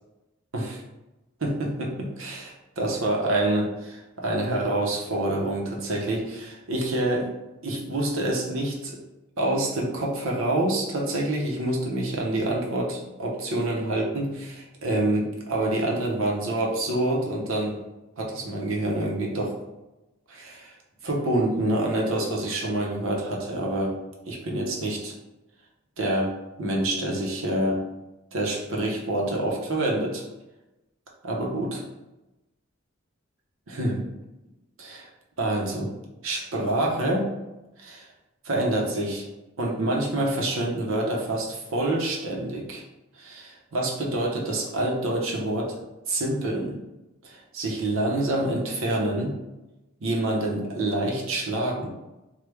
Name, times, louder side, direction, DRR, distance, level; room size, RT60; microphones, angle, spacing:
voice 1, 1.4-7.3 7.6-9.0 9.4-17.8 18.2-19.6 20.3-20.7 21.0-24.0 24.3-25.1 26.0-27.8 28.3-30.2 31.2-31.8 33.7-34.0 34.8-35.1 35.4-35.9 36.2-37.3 37.8-38.1 38.4-39.3 39.6-42.8 43.2-45.8 46.1-46.8 47.2-49.3 50.0-51.9, right 1 dB, 70° right, -2 dB, 0.8 m, -27 dB
3.2 x 2.2 x 3.4 m, 1.0 s
head